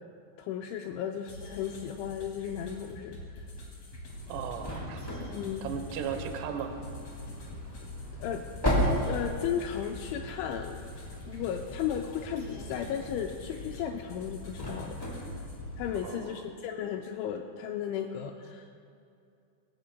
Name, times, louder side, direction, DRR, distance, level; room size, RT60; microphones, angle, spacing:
voice 1, 0.4-3.4 5.3-5.7 8.2-8.4 9.0-10.8 11.3-15.0 15.8-18.7, left 9 dB, 85° left, 3 dB, 2.8 m, -35 dB
sound 1, 1.3-16.1, left 2 dB, 45° left, 2.6 m, -45 dB
sound 2, 4.1-16.1, equal, 5° left, 2.8 m, -36 dB
voice 2, 4.3-5.1 5.6-6.8 16.0-16.4, right 7 dB, 75° right, 5 dB, 2.6 m, -36 dB
22.0 x 17.5 x 2.2 m, 2.5 s
omnidirectional pair, 5.8 m